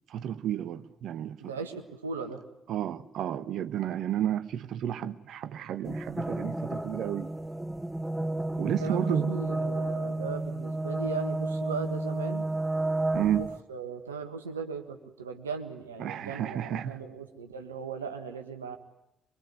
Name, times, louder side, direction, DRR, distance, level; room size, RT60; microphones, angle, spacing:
voice 1, 0.1-1.5 2.7-7.3 8.6-9.4 13.1-13.5 16.0-17.0, right 10 dB, 60° right, 1.2 m, -32 dB
voice 2, 1.4-2.4 8.8-12.4 13.4-18.8, right 4 dB, 85° right, 1.6 m, -38 dB
sound 1, 5.8-13.6, right 2 dB, 10° right, 1.0 m, -31 dB
23.5 x 23.5 x 9.6 m
figure-of-eight pair, 45°, 0 cm